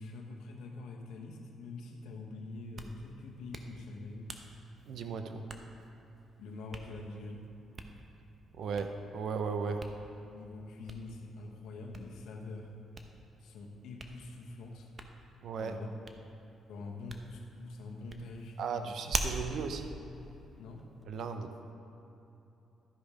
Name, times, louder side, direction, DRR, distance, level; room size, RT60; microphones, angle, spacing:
voice 1, 0.0-4.3 6.4-7.4 10.2-12.7 13.4-14.9 15.6-15.9 16.7-19.0 20.5-20.8, left 3 dB, 85° left, 1 dB, 1.2 m, -45 dB
Hands, 2.5-21.0, right 3 dB, 35° right, 0.8 m, -46 dB
voice 2, 4.9-5.5 8.5-9.9 15.4-15.8 18.6-20.0 21.1-21.5, right 5 dB, 70° right, 7 dB, 0.7 m, -36 dB
12.5 x 5.2 x 5.0 m, 3.0 s
cardioid pair, 90°, 0 cm